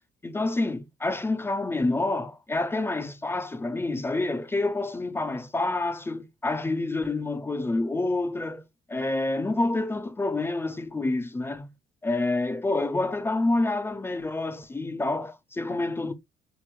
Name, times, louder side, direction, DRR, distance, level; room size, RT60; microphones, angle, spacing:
voice 1, 0.2-8.6 8.9-11.7 12.0-16.1, left 2 dB, 15° left, 0.4 m, -28 dB
4.3 x 3.0 x 2.2 m
cardioid pair, 110°, 17 cm